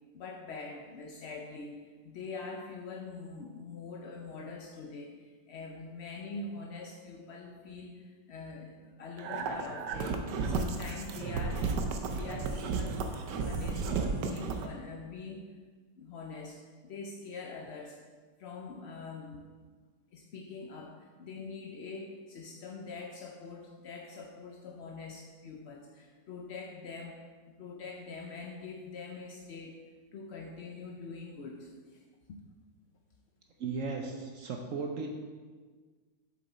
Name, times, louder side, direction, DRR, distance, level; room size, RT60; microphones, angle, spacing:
voice 1, 0.1-13.0 13.4-15.5 16.0-18.0 18.4-19.5 20.1-29.8 30.1-32.0 32.3-32.4, left 4 dB, 65° left, 1 dB, 0.6 m, -44 dB
sound 1, 9.2-14.7, right 4 dB, 75° right, 1.3 m, -33 dB
voice 2, 33.6-35.1, right 4 dB, 60° right, 2 dB, 0.9 m, -36 dB
7.5 x 6.9 x 4.1 m, 1.5 s
omnidirectional pair, 1.9 m